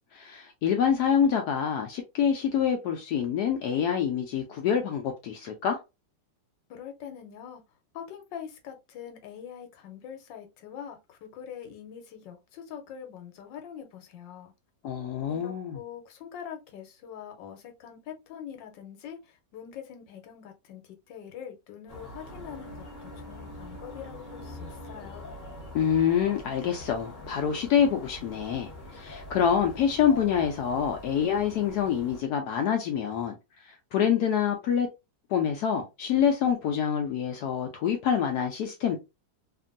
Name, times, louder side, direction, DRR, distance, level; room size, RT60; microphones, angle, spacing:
voice 1, 0.1-5.8 14.8-15.8 25.7-33.4 33.6-34.9 35.3-39.0, left 8 dB, 70° left, 1.0 m, -26 dB
voice 2, 6.7-7.6 7.9-14.5 15.3-25.3, left 8 dB, 85° left, 1.4 m, -43 dB
sound 1, 21.9-32.2, left 1 dB, 30° left, 1.1 m, -43 dB
2.9 x 2.6 x 2.5 m
omnidirectional pair, 1.9 m